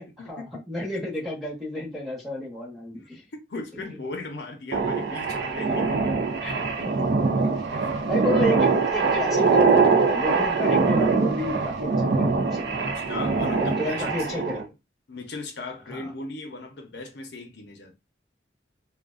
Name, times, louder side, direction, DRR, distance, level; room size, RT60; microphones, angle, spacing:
voice 1, 0.0-3.2 3.7-4.0 5.7-5.8 6.4-6.7 7.4-7.6 8.1-12.9 13.6-14.7 15.9-16.1, left 1 dB, ahead, 0.9 m, -31 dB
voice 2, 3.5-6.2 6.8-7.1 12.8-14.7 15.1-18.0, left 2 dB, 70° left, 0.6 m, -38 dB
sound 1, 4.7-14.6, right 4 dB, 65° right, 0.4 m, -23 dB
2.4 x 2.1 x 2.4 m
head